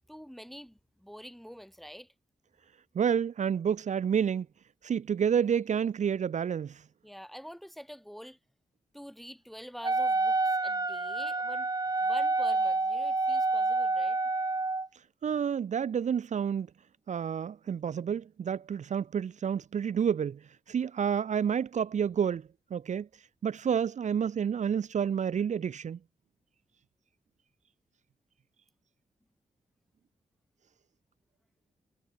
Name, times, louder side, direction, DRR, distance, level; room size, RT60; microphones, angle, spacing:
voice 1, 0.0-2.1 7.0-8.4 8.9-11.7 12.0-14.2, equal, ahead, 4.0 m, -46 dB
voice 2, 2.9-4.5 4.8-6.8 15.2-16.7 17.1-23.1 23.4-26.0, right 7 dB, 65° right, 0.7 m, -29 dB
Wind instrument woodwind instrument, 9.8-14.9, right 3 dB, 30° right, 2.6 m, -28 dB
cardioid pair, 65°, 13 cm